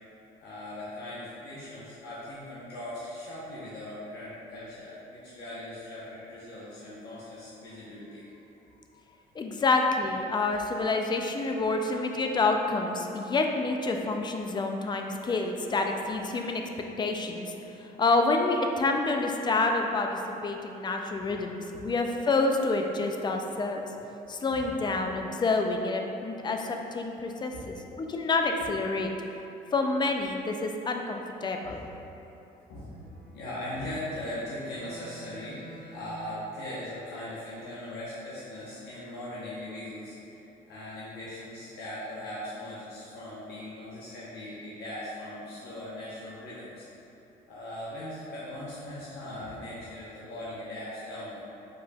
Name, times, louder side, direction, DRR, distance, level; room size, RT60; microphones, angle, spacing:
voice 1, 0.4-8.2 8.9-9.0 9.5-9.6 21.2-21.3 21.7-21.9 24.5-24.7 27.5-27.7 31.6-31.9 32.7-33.0 33.3-46.9 47.5-51.4, left 1 dB, 75° left, -9 dB, 0.9 m, -40 dB
voice 2, 9.4-17.5 17.8-23.8 24.3-29.1 29.7-31.8, left 3 dB, 25° left, 3 dB, 0.4 m, -28 dB
Bowed string instrument, 32.9-36.3, right 2 dB, 30° right, 1.2 m, -50 dB
5.1 x 4.3 x 2.3 m, 3.0 s
cardioid pair, 110°, 17 cm